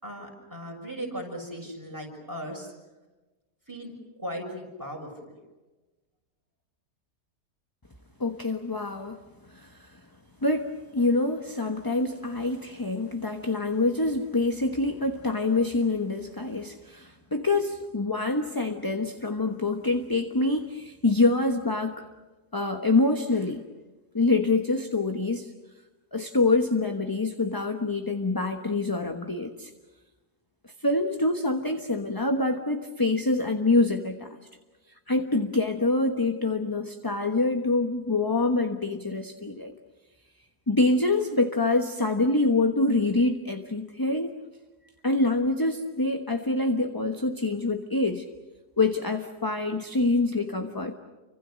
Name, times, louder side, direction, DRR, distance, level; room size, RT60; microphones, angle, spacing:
voice 1, 0.0-2.7 3.7-3.9 4.2-5.3, equal, 10° right, 1 dB, 6.4 m, -37 dB
voice 2, 8.2-9.2 9.5-10.0 10.4-22.1 22.5-23.6 24.1-25.5 26.1-29.7 30.6-34.4 35.1-39.7 40.7-44.3 45.0-48.2 48.8-50.9, left 2 dB, 15° left, 5 dB, 1.1 m, -26 dB
29.5 x 25.5 x 6.4 m, 1.2 s
omnidirectional pair, 1.7 m